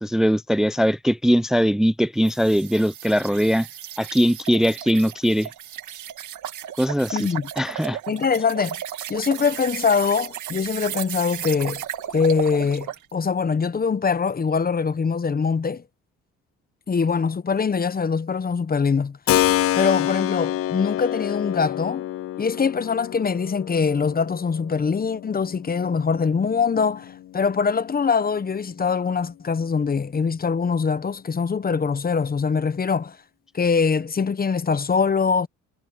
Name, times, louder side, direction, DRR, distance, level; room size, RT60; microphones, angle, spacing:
voice 1, 0.0-3.7 4.0-5.5 6.8-7.3 7.6-8.0, equal, ahead, 0.6 m, -20 dB
sound 1, 2.2-13.1, right 11 dB, 75° right, 2.0 m, -35 dB
voice 2, 7.1-7.5 8.1-8.8 9.1-11.8 12.1-15.8 16.9-19.2 19.7-22.0 22.4-33.2 33.5-35.5, left 5 dB, 30° left, 0.9 m, -23 dB
Keyboard (musical), 19.3-27.9, left 13 dB, 50° left, 0.4 m, -28 dB
cardioid pair, 90°, 30 cm